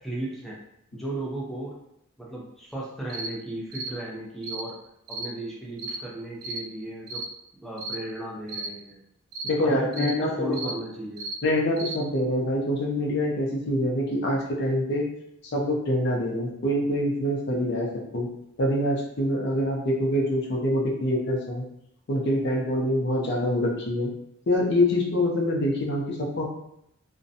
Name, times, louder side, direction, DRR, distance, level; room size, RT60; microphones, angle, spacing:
voice 1, 0.0-0.6 0.9-1.7 2.2-4.8 5.1-7.2 7.5-9.0 9.6-11.3, right 1 dB, ahead, -4 dB, 0.4 m, -35 dB
sound 1, 3.1-3.3 3.7-3.9 4.4-4.7 5.1-5.3 5.8-6.0 6.4-6.6 7.1-7.3 7.8-8.0 8.5-8.7 9.3-9.5 9.9-10.2 10.5-10.8 11.2-11.4 11.8-12.0, right 2 dB, 90° right, 0.5 m, -34 dB
voice 2, 9.4-10.5 11.4-15.1 15.5-17.9 18.1-18.3 18.6-21.6 22.1-24.1 24.5-26.4, left 1 dB, 50° left, -1 dB, 0.5 m, -25 dB
2.5 x 2.1 x 2.6 m, 0.76 s
head